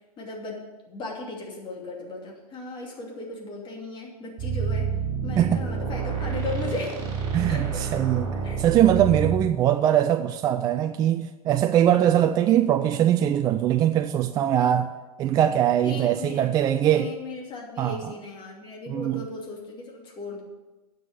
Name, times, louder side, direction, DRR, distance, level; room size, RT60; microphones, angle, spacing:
voice 1, 0.2-4.9 5.2-7.0 7.5-7.9 8.4-8.6 15.8-16.5 16.9-20.4, left 2 dB, 25° left, -1 dB, 2.7 m, -36 dB
sound 1, 4.4-9.5, right 6 dB, 40° right, 4.0 m, -28 dB
voice 2, 7.3-14.9 15.2-17.1 17.8-18.1 18.9-19.2, right 11 dB, 20° right, 8 dB, 0.3 m, -22 dB
9.3 x 6.4 x 7.0 m, 1.1 s
hypercardioid pair, 115°, 20 cm